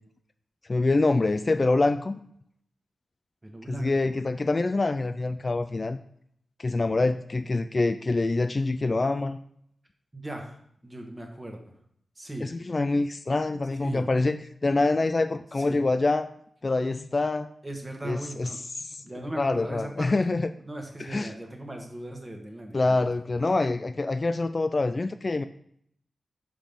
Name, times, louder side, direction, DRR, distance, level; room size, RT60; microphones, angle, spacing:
voice 1, 0.7-2.2 3.7-6.0 6.6-9.4 12.4-16.3 16.6-17.5 18.0-19.0 19.4-20.5 21.0-21.3 22.7-25.4, left 3 dB, 35° left, 9 dB, 0.3 m, -25 dB
voice 2, 3.4-4.1 10.1-10.6 10.8-11.6 12.2-12.5 13.8-14.1 15.6-15.8 17.6-18.6 19.0-20.3 20.6-23.0, right 1 dB, 20° right, 3 dB, 1.3 m, -38 dB
5.8 x 5.0 x 5.2 m, 0.67 s
wide cardioid pair, 105°, 0 cm